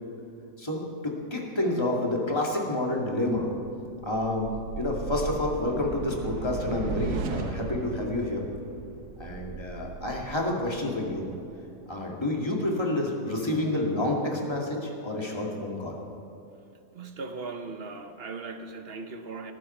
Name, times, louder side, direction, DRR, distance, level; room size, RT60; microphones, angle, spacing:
voice 1, 0.6-3.5 4.0-8.5 9.2-11.2 11.9-16.0, left 1 dB, 15° left, -1 dB, 2.1 m, -29 dB
sound 1, 3.7-11.6, right 5 dB, 75° right, 1.4 m, -37 dB
voice 2, 16.9-19.5, right 3 dB, 45° right, 7 dB, 1.0 m, -38 dB
18.0 x 14.5 x 4.4 m, 2.7 s
omnidirectional pair, 1.6 m